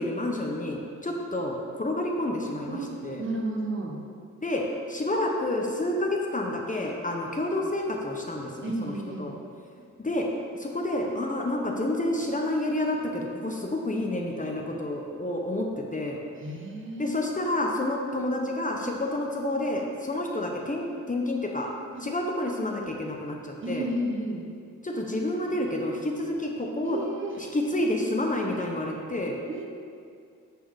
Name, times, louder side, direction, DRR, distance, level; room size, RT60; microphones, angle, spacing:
voice 1, 0.0-3.2 4.4-4.6 4.9-8.9 9.2-9.3 10.0-10.3 10.5-16.2 17.0-21.7 22.0-23.9 24.8-27.0 27.5-29.4, left 1 dB, 25° left, 0 dB, 0.9 m, -29 dB
voice 2, 2.7-4.0 8.6-9.3 16.4-17.1 21.9-22.2 23.6-24.4 26.8-27.4 29.5-29.7, right 1 dB, 40° right, 0 dB, 1.3 m, -32 dB
9.4 x 4.5 x 6.4 m, 2.3 s
wide cardioid pair, 125°, 32 cm